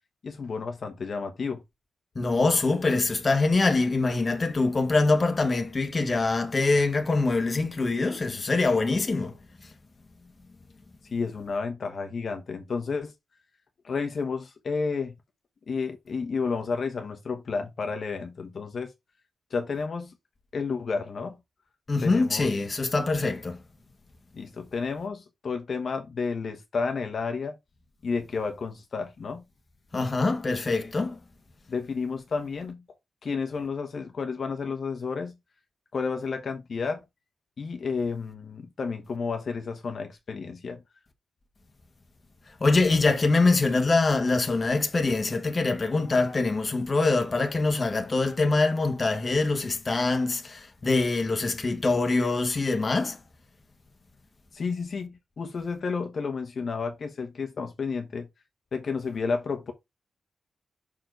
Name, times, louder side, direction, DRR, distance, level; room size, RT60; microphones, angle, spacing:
voice 1, 0.2-1.6 11.1-13.1 13.8-15.1 15.7-18.9 19.5-20.1 20.5-21.4 22.0-22.5 24.3-27.6 28.0-29.4 31.7-32.8 33.2-35.3 35.9-37.0 37.6-40.8 54.5-58.3 58.7-59.7, left 5 dB, 45° left, 1.1 m, -31 dB
voice 2, 2.1-9.4 21.9-23.6 29.9-31.2 42.6-53.2, left 3 dB, 25° left, 1.3 m, -24 dB
6.2 x 4.4 x 4.6 m
wide cardioid pair, 170°, 0 cm